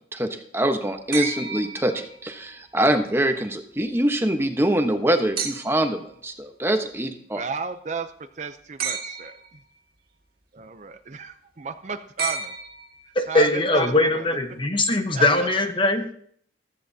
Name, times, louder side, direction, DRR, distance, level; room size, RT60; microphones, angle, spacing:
voice 1, 0.1-7.4, right 1 dB, 15° right, 5 dB, 1.1 m, -24 dB
sound 1, 1.1-2.5 5.4-6.0 8.8-9.6 12.2-13.2 14.8-14.9, right 5 dB, 55° right, 1.8 m, -32 dB
voice 2, 7.3-9.3 10.5-12.5 13.3-14.3 15.1-15.5, right 5 dB, 40° right, 9 dB, 0.6 m, -33 dB
voice 3, 13.2-16.1, left 2 dB, 30° left, 6 dB, 1.1 m, -21 dB
15.0 x 14.0 x 2.8 m, 0.64 s
head